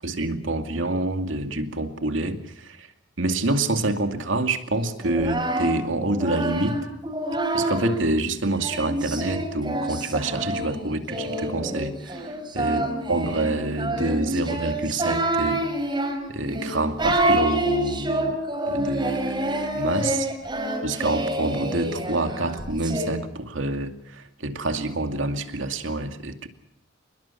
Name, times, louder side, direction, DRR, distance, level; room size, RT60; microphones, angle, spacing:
voice 1, 0.0-2.9 3.2-6.8 7.5-12.8 13.1-15.6 16.3-18.4 18.7-20.3 20.8-26.5, right 2 dB, 85° right, 7 dB, 2.5 m, -27 dB
Singing, 5.0-8.0 8.6-23.1, right 1 dB, 25° right, 5.4 m, -27 dB
28.5 x 21.0 x 5.9 m, 0.78 s
head